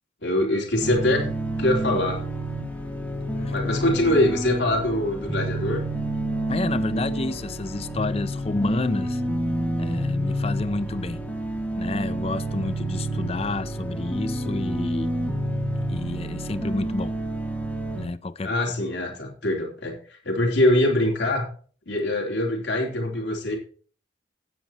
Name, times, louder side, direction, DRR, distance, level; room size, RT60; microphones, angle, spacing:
voice 1, 0.2-1.3 1.6-2.2 3.5-5.8 18.4-21.5 21.9-23.6, left 1 dB, 65° left, 3.5 m, -23 dB
sound 1, 0.8-18.1, right 1 dB, 10° left, 1.7 m, -29 dB
voice 2, 6.5-9.2 9.8-11.2 11.8-15.2 15.9-17.2 18.0-18.5, left 2 dB, 35° left, 0.5 m, -29 dB
16.0 x 9.3 x 2.9 m
head